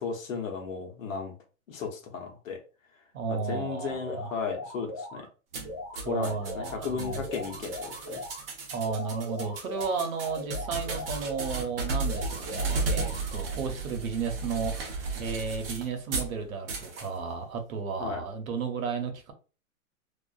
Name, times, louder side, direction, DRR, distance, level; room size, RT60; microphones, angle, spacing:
voice 1, 0.0-1.3 1.7-2.6 3.3-5.3 6.0-8.2 18.0-18.2, left 5 dB, 70° left, 0.9 m, -35 dB
voice 2, 3.1-4.3 6.0-7.2 8.7-19.3, right 5 dB, 80° right, 0.8 m, -33 dB
sound 1, 4.0-5.2 5.6-8.4 8.8-11.6 12.0-13.6, left 1 dB, 20° left, 0.4 m, -40 dB
sound 2, 5.5-16.3 16.7-17.1, right 3 dB, 45° right, 0.5 m, -34 dB
2.4 x 2.4 x 2.3 m
hypercardioid pair, 175°, 41 cm